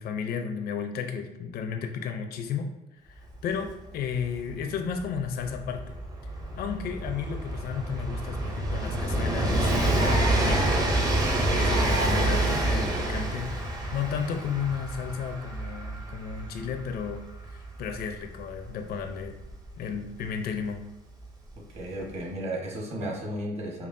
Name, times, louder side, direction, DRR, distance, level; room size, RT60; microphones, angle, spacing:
voice 1, 0.0-2.7 3.0-6.0 6.6-10.8 11.5-13.6 13.9-19.4 19.8-20.8, left 7 dB, 65° left, 6 dB, 0.5 m, -33 dB
Train, 3.3-3.4 3.6-20.2 21.2-21.3, right 1 dB, 20° right, 0.7 m, -28 dB
voice 2, 21.6-23.9, right 1 dB, 40° right, -2 dB, 1.3 m, -34 dB
5.4 x 2.4 x 2.6 m, 1.0 s
cardioid pair, 110°, 17 cm